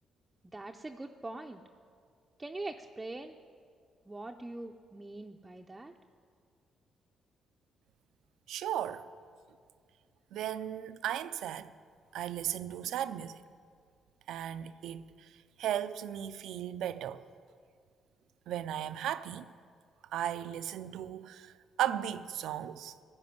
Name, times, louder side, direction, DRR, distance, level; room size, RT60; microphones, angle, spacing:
voice 1, 0.5-1.6 2.4-3.3 4.1-5.9, right 2 dB, 20° right, 0.5 m, -42 dB
voice 2, 8.5-9.1 10.3-11.7 12.1-13.4 14.3-15.1 15.6-17.2 18.5-19.5 20.1-21.5 21.8-22.9, right 11 dB, 80° right, 0.4 m, -36 dB
14.0 x 5.3 x 9.3 m
cardioid pair, 90°, 0 cm